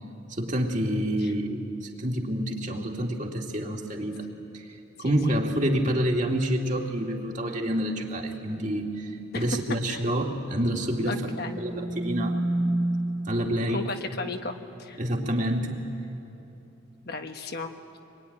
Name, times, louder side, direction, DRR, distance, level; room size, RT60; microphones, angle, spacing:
voice 1, 0.3-4.2 4.5-4.6 5.0-12.4 13.3-13.8 15.0-15.9, equal, 40° right, 0 dB, 2.5 m, -28 dB
voice 2, 5.0-5.4 9.3-9.5 9.9-10.1 11.1-11.6 13.7-14.5 14.8-15.0 17.0-18.0, left 3 dB, 50° left, 5 dB, 1.2 m, -35 dB
sound 1, 11.2-13.7, right 1 dB, 25° right, 0.6 m, -29 dB
26.0 x 21.5 x 10.0 m, 3.0 s
head